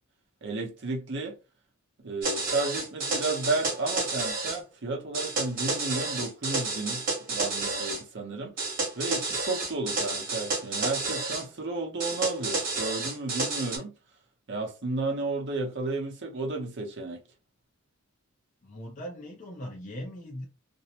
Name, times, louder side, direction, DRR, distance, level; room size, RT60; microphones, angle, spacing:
voice 1, 0.4-1.4 2.0-8.5 9.0-13.9 14.5-17.2, right 3 dB, 55° right, 0.7 m, -32 dB
sound 1, 2.2-4.6 5.1-8.0 8.6-11.4 12.0-13.8, right 3 dB, 40° right, 1.2 m, -30 dB
voice 2, 18.6-20.5, equal, 35° left, 0.5 m, -39 dB
2.6 x 2.1 x 2.7 m
head